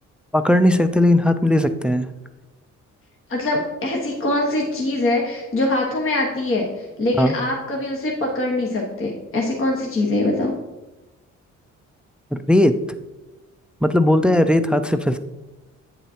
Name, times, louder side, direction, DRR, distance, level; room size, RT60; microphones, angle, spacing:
voice 1, 0.3-2.1 7.2-7.4 12.3-12.7 13.8-15.2, left 1 dB, 5° right, 10 dB, 0.4 m, -17 dB
voice 2, 3.3-10.5, left 2 dB, 45° left, -1 dB, 1.4 m, -23 dB
8.6 x 7.0 x 2.9 m, 1.1 s
cardioid pair, 90°, 30 cm